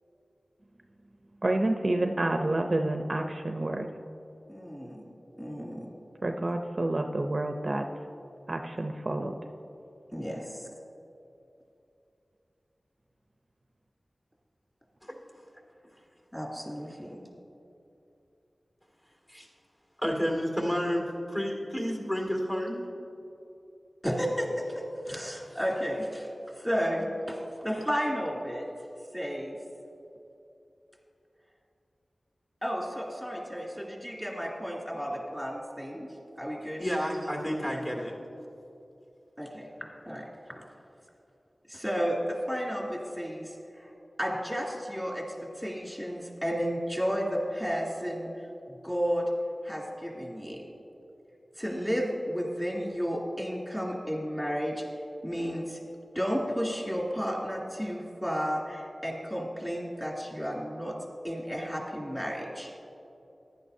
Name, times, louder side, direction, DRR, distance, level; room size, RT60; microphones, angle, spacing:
voice 1, 1.4-3.9 6.2-7.9 8.5-9.3, right 1 dB, 45° right, 5 dB, 0.6 m, -29 dB
voice 2, 4.5-5.0 5.3-5.9 10.1-10.4 16.3-17.2 24.0-26.3 26.6-27.4 27.6-28.7 29.1-29.6 32.6-36.1 36.4-36.9 39.4-39.7 40.1-40.3 40.6-40.7 41.7-43.9 44.2-48.3 48.8-49.3 49.6-50.6 51.6-54.8 55.2-55.8 56.1-61.0 61.2-62.7, equal, 5° left, -3 dB, 2.6 m, -32 dB
voice 3, 20.0-22.8 36.8-38.1, equal, 25° left, 0 dB, 2.2 m, -30 dB
15.0 x 11.0 x 2.7 m, 2.8 s
wide cardioid pair, 55°, 0 cm